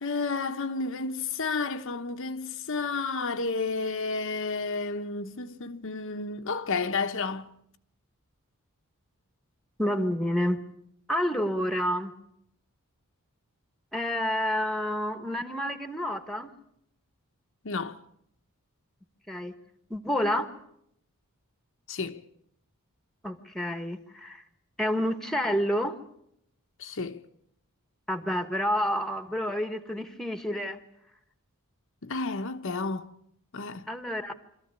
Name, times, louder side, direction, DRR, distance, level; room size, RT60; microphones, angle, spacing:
voice 1, 0.0-7.5 17.6-18.0 21.9-22.2 26.8-27.2 32.0-33.1 33.5-33.9, left 4 dB, 60° left, 1.0 m, -31 dB
voice 2, 9.8-10.6 11.1-12.1 13.9-16.5 19.3-19.5 19.9-20.5 23.2-24.4 24.8-26.0 28.1-30.8 33.9-34.3, equal, ahead, 1.4 m, -29 dB
25.5 x 14.0 x 9.6 m
head